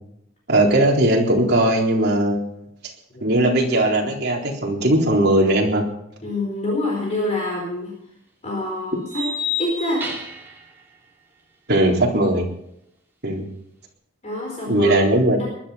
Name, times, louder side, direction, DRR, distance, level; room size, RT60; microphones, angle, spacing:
voice 1, 0.5-2.7 3.2-5.8 11.7-12.5 13.2-13.4 14.7-15.4, right 1 dB, 50° right, -1 dB, 4.0 m, -18 dB
voice 2, 6.2-7.9 8.4-9.3 9.6-10.1 14.2-14.9 15.4-15.5, left 2 dB, 30° left, -2 dB, 4.5 m, -26 dB
sound 1, 7.4-7.5 9.1-10.5, left 4 dB, 10° right, 3.5 m, -28 dB
20.5 x 12.0 x 5.8 m, 0.75 s
head